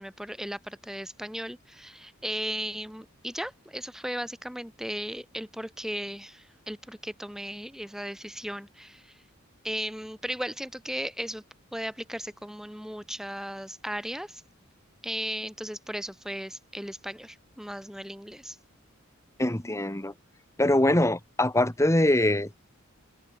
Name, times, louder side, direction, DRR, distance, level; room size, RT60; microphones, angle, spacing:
voice 1, 0.0-9.2 9.6-11.4 11.7-14.4 15.0-18.6, equal, ahead, 1.8 m, -36 dB
voice 2, 19.4-20.1 20.6-22.5, left 1 dB, 15° left, 2.0 m, -23 dB
open air
head